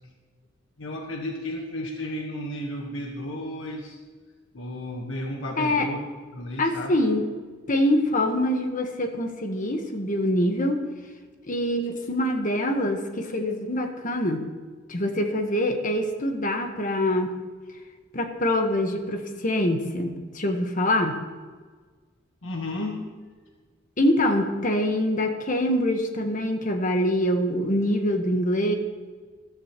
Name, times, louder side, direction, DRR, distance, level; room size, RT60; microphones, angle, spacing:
voice 1, 0.8-4.0 4.5-6.0 6.3-7.0 22.4-23.1, left 1 dB, 85° left, 1 dB, 1.4 m, -33 dB
voice 2, 5.6-5.9 6.6-7.2 7.7-10.8 11.5-14.5 14.9-17.4 18.1-21.2 24.0-28.8, left 1 dB, 45° left, 5 dB, 1.3 m, -24 dB
14.0 x 14.0 x 3.1 m, 1.4 s
head